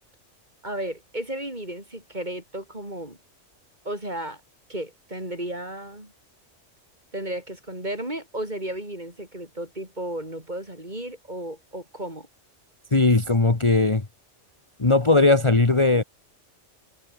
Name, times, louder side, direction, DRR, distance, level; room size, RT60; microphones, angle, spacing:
voice 1, 0.6-3.2 3.9-4.4 4.7-6.1 7.1-12.3, right 1 dB, 35° right, 6.9 m, -34 dB
voice 2, 12.9-14.0 14.8-16.0, left 3 dB, 25° left, 1.4 m, -18 dB
omnidirectional pair, 1.3 m